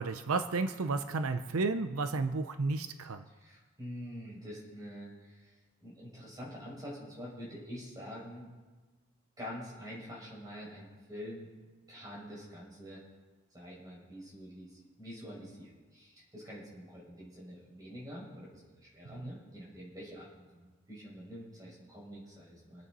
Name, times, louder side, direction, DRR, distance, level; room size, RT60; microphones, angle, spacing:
voice 1, 0.0-3.2, right 3 dB, 80° right, 8 dB, 0.6 m, -32 dB
voice 2, 3.4-8.5 9.4-11.5 11.9-13.0 13.5-20.3 20.5-22.9, equal, 20° right, -5 dB, 5.9 m, -46 dB
27.0 x 9.1 x 4.1 m, 1.3 s
head